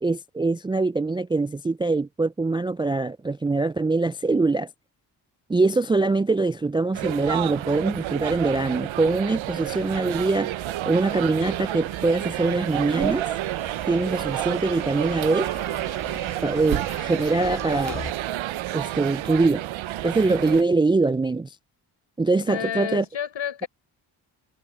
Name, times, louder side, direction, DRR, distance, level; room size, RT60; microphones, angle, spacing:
voice 1, 0.0-4.7 5.5-10.5 10.9-13.3 13.9-15.5 16.4-18.0 18.7-19.7 20.0-21.5 22.2-23.0, right 3 dB, 10° right, 0.3 m, -23 dB
sound 1, 6.9-20.6, right 14 dB, 70° right, 0.8 m, -30 dB
sound 2, 9.3-18.1, left 5 dB, 40° left, 4.8 m, -43 dB
voice 2, 22.5-23.7, left 9 dB, 65° left, 5.4 m, -30 dB
supercardioid pair, 55°, 49 cm